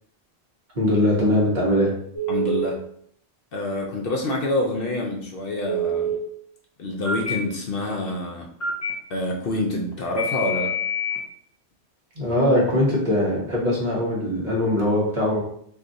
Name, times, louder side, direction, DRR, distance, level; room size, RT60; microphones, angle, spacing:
voice 1, 0.7-1.9 12.2-15.4, left 1 dB, 45° right, -4 dB, 1.0 m, -21 dB
Telephone, 2.1-2.7 5.6-6.2 7.0-7.3 8.6-8.9 10.2-11.2, right 1 dB, 30° left, 0.3 m, -26 dB
voice 2, 2.3-2.8 3.5-6.1 6.8-8.5 9.1-10.7, left 2 dB, 65° left, 0 dB, 0.7 m, -27 dB
2.6 x 2.4 x 3.8 m, 0.66 s
omnidirectional pair, 1.1 m